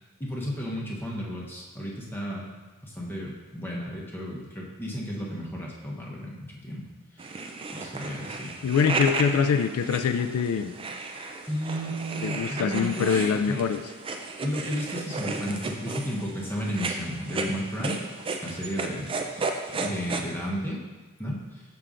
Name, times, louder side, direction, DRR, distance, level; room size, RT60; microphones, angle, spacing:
voice 1, 0.2-2.5 2.8-6.9 7.2-7.4 7.7-8.5 11.5-13.6 14.4-18.0 18.4-19.4 19.8-20.8 21.2-21.6, equal, 10° left, -4 dB, 0.9 m, -33 dB
sound 1, 7.2-20.2, right 3 dB, 25° right, 0.4 m, -34 dB
voice 2, 8.6-10.7 12.2-13.8, left 6 dB, 75° left, 9 dB, 0.3 m, -24 dB
6.7 x 5.9 x 2.5 m, 1.2 s
head